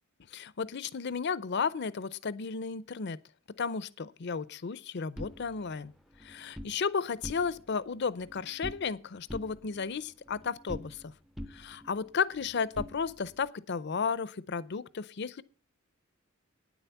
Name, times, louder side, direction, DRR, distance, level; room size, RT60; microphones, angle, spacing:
voice 1, 0.3-3.2 3.6-5.9 6.2-11.1 11.5-15.4, left 5 dB, 55° left, 0.6 m, -33 dB
sound 1, 5.2-6.8 7.1-7.8 8.0-9.0 9.3-11.1 11.4-13.5, equal, ahead, 0.5 m, -45 dB
9.6 x 7.9 x 7.1 m
head